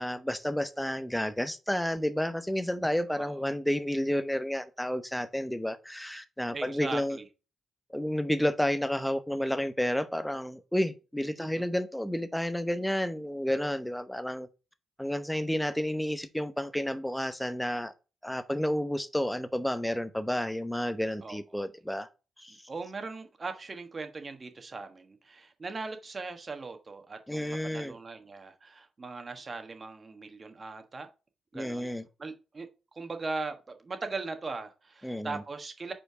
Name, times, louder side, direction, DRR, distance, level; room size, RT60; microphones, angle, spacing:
voice 1, 0.0-7.2 7.9-14.5 15.0-17.9 18.2-22.1 22.4-22.6 27.3-28.0 31.5-32.0 35.0-35.4, equal, 5° left, 0.7 m, -31 dB
voice 2, 6.5-7.3 11.4-11.6 21.2-21.4 22.5-31.1 31.5-31.9 32.2-35.9, right 3 dB, 35° right, 1.3 m, -39 dB
5.5 x 4.4 x 4.9 m
cardioid pair, 75°, 0 cm